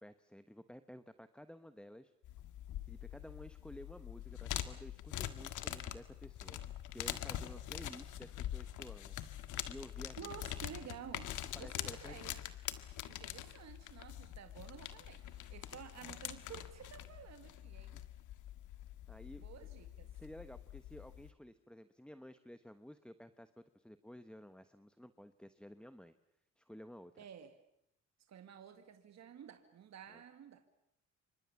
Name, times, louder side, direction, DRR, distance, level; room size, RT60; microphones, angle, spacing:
voice 1, 0.0-2.1 2.9-9.2 9.7-10.3 11.5-12.3 19.1-19.7 20.1-26.1 26.6-27.3 30.1-30.2, equal, 5° left, 11 dB, 1.1 m, -53 dB
sound 1, 2.2-21.3, left 12 dB, 85° left, 1.8 m, -45 dB
voice 2, 10.2-12.4 13.1-18.0 19.4-20.1 27.2-27.6 28.3-30.6, right 8 dB, 60° right, 7 dB, 2.2 m, -52 dB
29.0 x 25.5 x 7.1 m, 0.76 s
cardioid pair, 90°, 30 cm